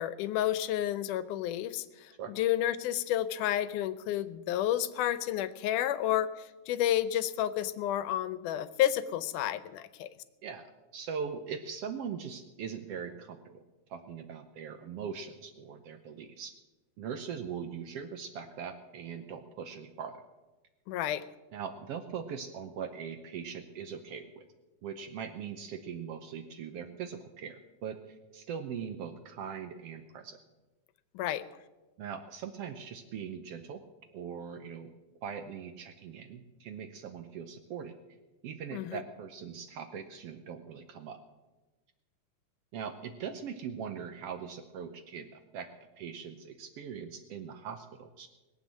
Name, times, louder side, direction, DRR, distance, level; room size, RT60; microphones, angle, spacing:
voice 1, 0.0-6.3 6.7-10.1 20.9-21.2 31.1-31.4 38.7-39.0, left 12 dB, 85° left, 14 dB, 2.2 m, -30 dB
voice 2, 10.4-13.6 13.9-16.5 17.0-20.2 21.5-24.4 24.8-30.4 32.0-33.8 34.1-34.9 35.2-38.0 38.4-41.2 42.7-45.7 46.0-48.3, right 7 dB, 75° right, 8 dB, 1.4 m, -41 dB
20.0 x 7.8 x 7.3 m, 1.1 s
omnidirectional pair, 3.5 m